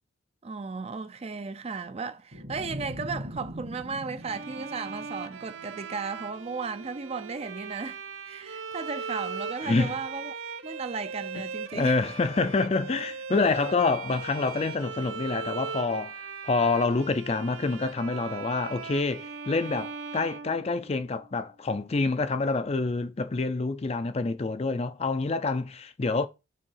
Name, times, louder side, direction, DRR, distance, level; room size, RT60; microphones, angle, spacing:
voice 1, 0.4-10.4 10.6-12.0, right 4 dB, 30° right, 0.4 m, -35 dB
sound 1, 2.3-5.6, equal, 60° right, 1.8 m, -40 dB
Bowed string instrument, 4.2-21.2, right 5 dB, 90° right, 0.8 m, -39 dB
voice 2, 9.6-10.0 11.7-26.3, left 3 dB, 30° left, 0.4 m, -27 dB
5.3 x 3.8 x 5.6 m
head